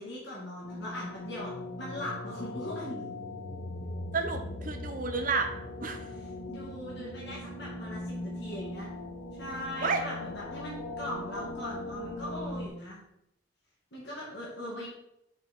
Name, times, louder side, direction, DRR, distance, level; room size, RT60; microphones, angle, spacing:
voice 1, 0.0-1.5 1.8-3.0 6.5-8.9 9.4-13.0 13.9-14.9, left 1 dB, 60° left, -6 dB, 1.8 m, -40 dB
sound 1, 0.6-12.7, left 2 dB, 80° left, 0.8 m, -39 dB
voice 2, 4.1-5.5 5.8-6.1 9.8-10.0 14.7-14.9, right 4 dB, 40° right, 6 dB, 0.7 m, -31 dB
5.9 x 4.5 x 4.2 m, 0.80 s
head